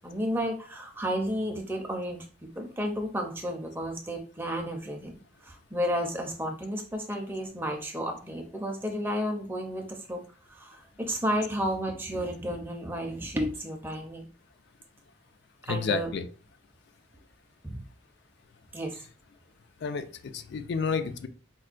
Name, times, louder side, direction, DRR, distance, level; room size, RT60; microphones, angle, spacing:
voice 1, 0.0-2.3 2.6-10.2 10.5-14.3 15.7-16.1 17.6-17.8 18.7-19.0, equal, 10° right, 2 dB, 0.5 m, -32 dB
voice 2, 15.7-16.3 19.8-21.3, left 5 dB, 55° left, 10 dB, 0.3 m, -30 dB
4.3 x 2.1 x 2.4 m, 0.40 s
head